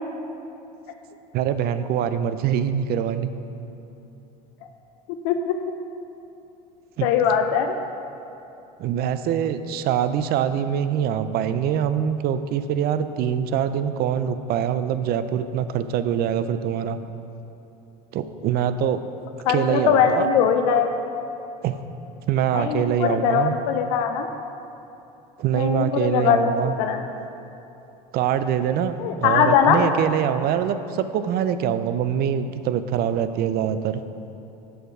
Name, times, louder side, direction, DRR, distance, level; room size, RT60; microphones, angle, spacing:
voice 1, 1.3-3.3 7.0-7.1 8.8-17.0 18.1-19.0 19.5-20.3 21.6-21.8 22.3-23.5 25.4-26.7 28.1-34.0, right 9 dB, 50° right, 11 dB, 0.5 m, -24 dB
voice 2, 5.2-5.6 7.0-7.8 19.5-20.9 22.5-24.3 25.5-27.0 29.0-29.9, left 7 dB, 70° left, 6 dB, 0.5 m, -21 dB
6.7 x 6.6 x 4.9 m, 2.9 s
hypercardioid pair, 85°, 21 cm